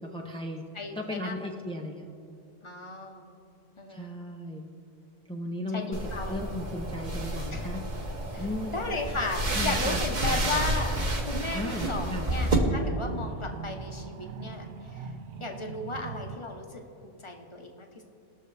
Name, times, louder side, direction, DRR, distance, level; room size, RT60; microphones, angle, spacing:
voice 1, 0.0-0.6 0.9-2.1 3.9-4.7 5.3-6.0 6.3-7.8 8.4-8.8 9.5-10.0 10.3-10.5 11.5-12.3, left 1 dB, 10° left, 0 dB, 0.3 m, -36 dB
voice 2, 0.7-1.5 2.6-3.3 3.8-4.1 5.7-6.3 7.5-7.7 8.3-15.1 15.4-17.9, left 3 dB, 30° left, 2 dB, 0.8 m, -35 dB
sound 1, 5.9-12.6, right 1 dB, 40° right, 1.1 m, -30 dB
sound 2, 10.9-16.4, right 6 dB, 85° right, 1.0 m, -42 dB
19.5 x 6.6 x 3.3 m, 2.6 s
omnidirectional pair, 1.2 m